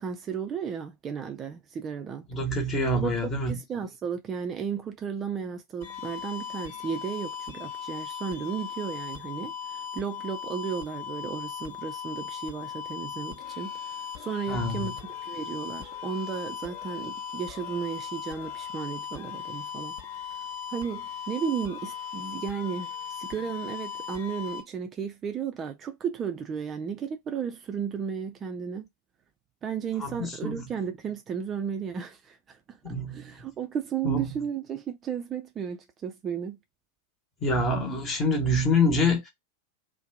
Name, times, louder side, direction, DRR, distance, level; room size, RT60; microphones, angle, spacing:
voice 1, 0.0-2.3 2.9-20.0 20.7-28.8 29.6-36.6, right 7 dB, 25° right, 0.5 m, -34 dB
voice 2, 2.3-3.6 14.5-14.9 30.0-30.6 32.8-33.3 34.0-34.3 37.4-39.3, left 1 dB, 25° left, 1.1 m, -26 dB
sound 1, 5.8-24.6, left 8 dB, 50° left, 0.8 m, -38 dB
2.7 x 2.2 x 3.3 m
figure-of-eight pair, 90°, 0 cm